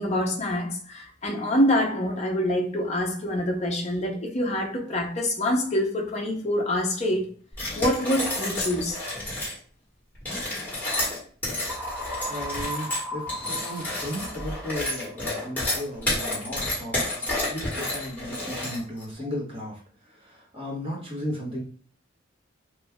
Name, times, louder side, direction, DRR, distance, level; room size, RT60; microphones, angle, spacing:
voice 1, 0.0-7.3 7.8-9.0, left 1 dB, 35° left, 0.7 m, -26 dB
sound 1, 7.5-9.6 10.2-19.0, left 1 dB, 10° left, 1.4 m, -30 dB
sound 2, 11.7-15.6, equal, 10° right, 0.3 m, -37 dB
voice 2, 12.3-21.6, equal, 30° right, 1.2 m, -35 dB
3.1 x 2.5 x 3.5 m
head